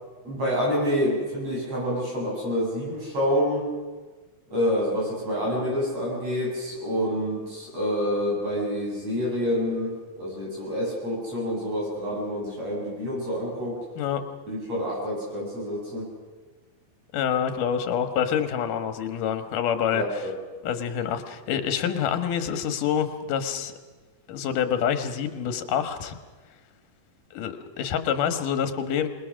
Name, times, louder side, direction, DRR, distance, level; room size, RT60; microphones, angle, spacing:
voice 1, 0.2-3.7 4.5-13.8 14.5-16.1 19.9-20.3, equal, 50° right, -4 dB, 8.1 m, -27 dB
voice 2, 17.1-20.3 20.6-23.7 24.3-26.2 27.3-29.1, left 8 dB, 80° left, 8 dB, 2.9 m, -27 dB
26.5 x 20.5 x 6.3 m, 1.3 s
omnidirectional pair, 3.7 m